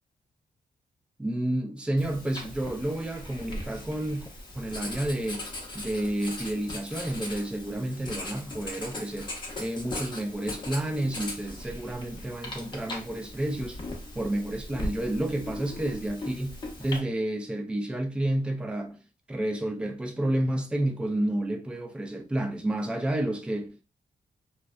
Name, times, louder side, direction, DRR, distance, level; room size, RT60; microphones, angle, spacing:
voice 1, 1.2-4.3 4.5-5.5 5.7-9.3 9.6-13.8 14.1-18.9 19.3-23.8, right 1 dB, 5° right, 0.4 m, -30 dB
Writing, 2.0-17.0, left 1 dB, 35° left, 0.7 m, -39 dB
2.6 x 2.1 x 2.3 m
wide cardioid pair, 140°, 14 cm